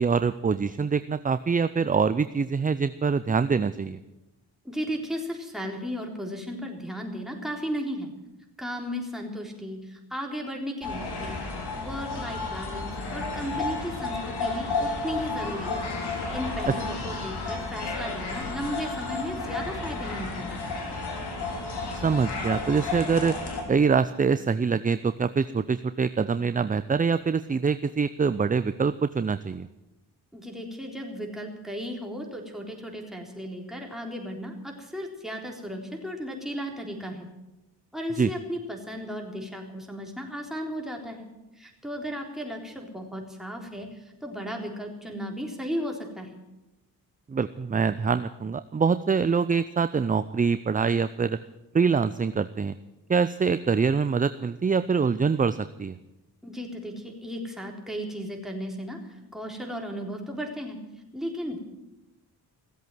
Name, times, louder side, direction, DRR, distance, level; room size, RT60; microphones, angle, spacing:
voice 1, 0.0-4.0 16.7-16.8 21.9-23.4 23.7-29.7 38.2-38.3 47.3-51.4 51.7-52.8 53.1-56.0, right 5 dB, 20° right, 13 dB, 0.5 m, -24 dB
voice 2, 4.6-8.1 8.6-11.4 11.8-15.8 16.3-20.7 30.3-37.3 37.9-41.3 41.6-43.9 44.2-46.3 56.4-59.0 59.3-60.8 61.1-61.6, equal, ahead, 1 dB, 3.8 m, -35 dB
sound 1, 10.8-23.6, left 3 dB, 65° left, 3.5 m, -32 dB
16.5 x 8.2 x 9.2 m, 0.98 s
cardioid pair, 70°, 42 cm